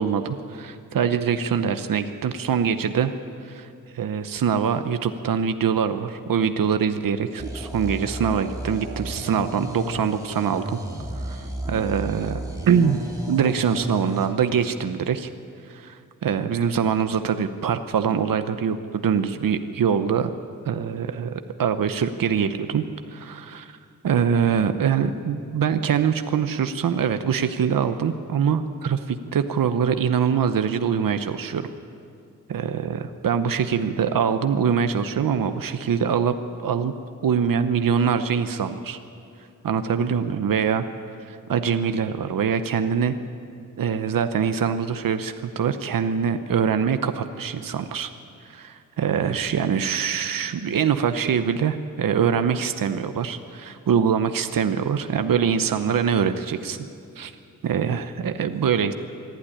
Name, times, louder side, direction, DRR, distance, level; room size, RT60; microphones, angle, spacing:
voice 1, 0.0-3.1 3.4-3.7 3.9-10.8 11.2-13.0 13.3-15.3 15.7-20.3 20.7-22.8 23.1-23.7 24.0-31.7 32.5-36.3 36.6-36.9 37.2-39.0 39.6-40.9 41.2-43.2 43.8-48.1 48.4-56.9 57.2-57.3 57.6-58.9, right 7 dB, 90° right, 9 dB, 0.9 m, -24 dB
sound 1, 7.4-14.3, right 1 dB, 10° right, 2.9 m, -33 dB
25.0 x 12.0 x 10.0 m, 2.6 s
wide cardioid pair, 145°, 33 cm